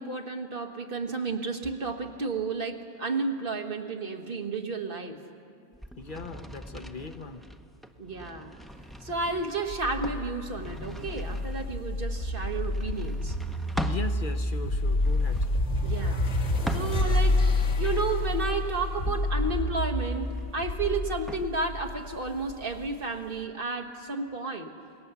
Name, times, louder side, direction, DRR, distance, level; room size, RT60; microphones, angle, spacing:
voice 1, 0.0-5.2 8.0-8.5 9.0-13.4 15.8-16.2 16.7-17.4 17.8-24.7, right 3 dB, 55° right, 4 dB, 1.5 m, -32 dB
sound 1, 5.7-14.1 14.9-17.3 17.8-21.5, equal, ahead, 0.6 m, -42 dB
voice 2, 6.0-7.4 13.8-15.5, left 4 dB, 50° left, 7 dB, 0.9 m, -38 dB
sound 2, 9.7-22.9, left 1 dB, 90° left, 2.0 m, -29 dB
27.0 x 19.0 x 7.0 m, 2.3 s
omnidirectional pair, 1.1 m